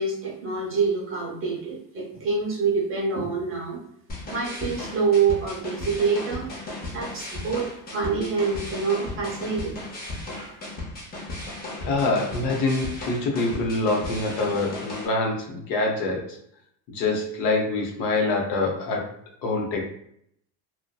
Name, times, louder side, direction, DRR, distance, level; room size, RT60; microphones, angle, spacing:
voice 1, 0.0-3.9 4.3-6.5 6.9-9.8 10.3-10.6, right 5 dB, 30° right, -3 dB, 0.7 m, -26 dB
sound 1, 4.1-15.1, left 2 dB, 20° left, 0.5 m, -36 dB
voice 2, 11.8-16.4 16.9-19.1 19.4-19.8, left 3 dB, 70° left, 1 dB, 0.8 m, -25 dB
2.6 x 2.1 x 2.2 m, 0.70 s
cardioid pair, 130°, 44 cm